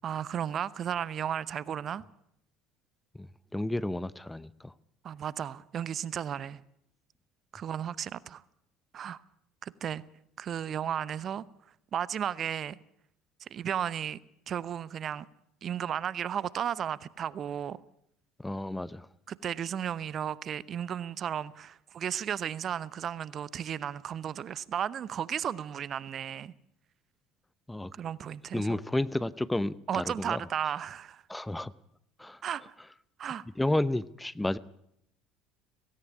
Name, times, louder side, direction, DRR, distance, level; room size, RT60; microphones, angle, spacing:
voice 1, 0.0-2.0 5.0-6.6 7.5-8.4 8.9-9.2 9.6-10.0 10.4-11.4 11.9-12.8 13.4-14.2 14.5-15.3 15.6-17.8 19.3-26.5 28.0-28.8 29.9-31.2 32.4-32.7 33.2-33.4, right 9 dB, 45° right, 0.8 m, -34 dB
voice 2, 3.2-4.7 18.4-19.1 27.7-27.9 28.5-30.4 31.3-31.7 32.2-32.4 33.6-34.6, left 1 dB, 10° left, 0.8 m, -31 dB
17.5 x 17.0 x 9.8 m
hypercardioid pair, 70°, 0 cm